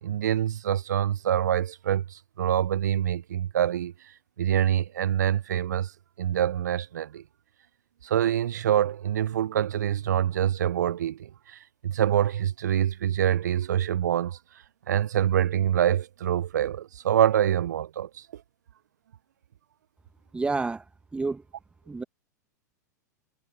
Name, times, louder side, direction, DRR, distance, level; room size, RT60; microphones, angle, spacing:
voice 1, 0.0-5.9 6.2-7.2 8.0-14.4 14.9-18.4, right 10 dB, 70° right, 0.7 m, -26 dB
voice 2, 20.3-20.8 21.1-21.4 21.9-22.0, right 3 dB, 10° right, 1.3 m, -29 dB
figure-of-eight pair, 95°, 10 cm